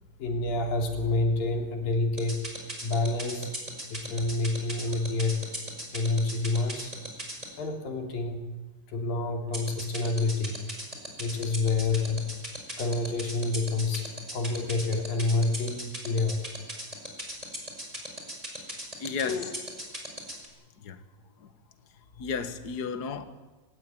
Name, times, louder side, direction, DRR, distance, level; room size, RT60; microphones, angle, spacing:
voice 1, 0.2-2.4 2.8-3.5 3.9-5.4 5.9-6.9 7.6-8.4 8.9-10.6 11.2-12.3 12.8-16.4 19.2-19.5, left 3 dB, 75° left, 5.1 m, -28 dB
sound 1, 2.2-7.4 9.5-20.5, right 1 dB, 10° right, 5.6 m, -36 dB
voice 2, 19.0-19.5 20.8-21.0 21.4-21.5 22.2-23.2, left 5 dB, 45° left, 1.3 m, -33 dB
26.0 x 19.0 x 9.3 m
omnidirectional pair, 4.1 m